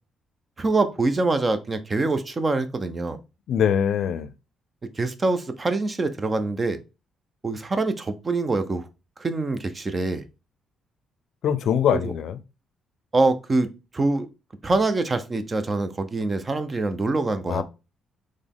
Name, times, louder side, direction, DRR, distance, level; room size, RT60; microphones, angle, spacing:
voice 1, 0.6-3.2 4.9-6.8 7.4-8.8 9.2-10.2 11.9-12.1 13.1-13.7 13.9-14.3 14.6-17.6, right 3 dB, 30° right, 0.6 m, -24 dB
voice 2, 3.5-4.3 11.4-12.4 17.5-17.6, left 8 dB, 70° left, 0.5 m, -22 dB
4.0 x 3.2 x 3.5 m
cardioid pair, 90°, 0 cm